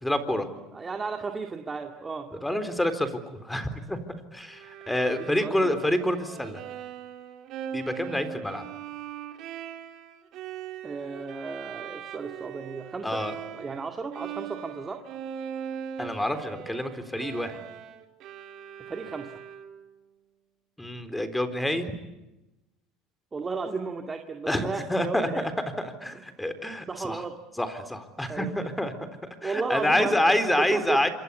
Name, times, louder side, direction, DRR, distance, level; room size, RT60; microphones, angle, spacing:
voice 1, 0.0-0.5 2.4-3.1 3.4-4.0 4.3-6.6 7.7-8.7 13.0-13.4 16.0-17.6 20.8-21.9 24.5-27.2 27.6-28.9 29.4-31.1, left 1 dB, 5° left, 10 dB, 3.9 m, -27 dB
voice 2, 0.7-2.3 5.2-5.9 10.8-13.2 13.5-15.0 18.9-19.3 23.3-25.5 26.1-26.2 26.9-27.3 28.3-28.7 29.4-31.0, right 4 dB, 20° right, 4 dB, 2.2 m, -34 dB
Bowed string instrument, 4.5-13.9 14.1-19.9, right 9 dB, 55° right, 3.3 m, -40 dB
27.5 x 24.5 x 8.4 m, 0.99 s
supercardioid pair, 100°, 0 cm